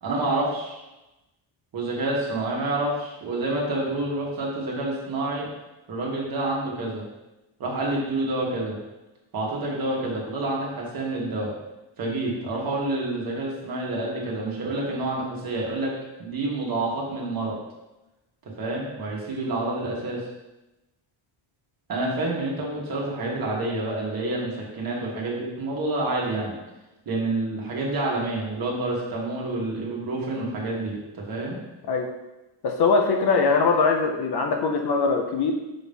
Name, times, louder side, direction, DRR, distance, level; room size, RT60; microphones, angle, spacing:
voice 1, 0.0-0.8 1.7-5.5 5.9-7.0 7.6-8.8 9.3-11.5 12.0-17.5 18.4-20.3 21.9-26.5 27.0-31.6, right 2 dB, 45° right, -4 dB, 1.7 m, -28 dB
voice 2, 32.6-35.5, left 4 dB, 55° left, 3 dB, 0.7 m, -22 dB
6.3 x 3.0 x 5.4 m, 1.0 s
cardioid pair, 170°, 48 cm